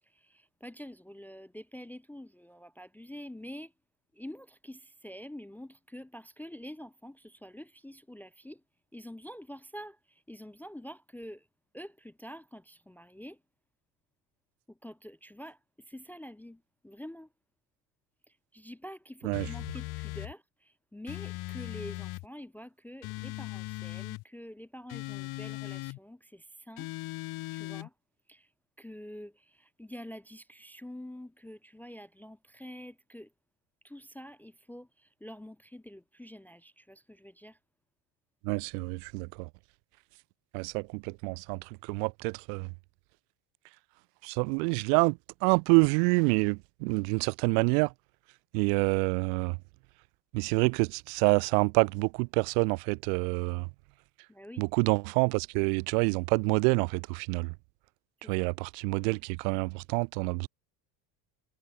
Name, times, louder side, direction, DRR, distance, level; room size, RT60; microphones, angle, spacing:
voice 1, 0.0-3.7 4.1-8.6 8.9-11.5 11.7-13.4 14.7-17.3 18.3-26.9 27.5-27.9 28.3-28.5 28.8-33.3 33.8-37.6 54.3-54.7 58.2-58.3, equal, 5° left, 0.3 m, -47 dB
sound 1, 19.3-20.3 21.1-22.3 23.0-24.2 24.9-26.0 26.8-27.9, left 21 dB, 50° left, 1.2 m, -38 dB
voice 2, 38.4-39.5 40.5-42.7 44.2-47.9 48.5-49.6 50.3-53.7 54.6-57.5 58.3-60.5, right 40 dB or more, 85° right, 0.7 m, -27 dB
cardioid pair, 155°, 46 cm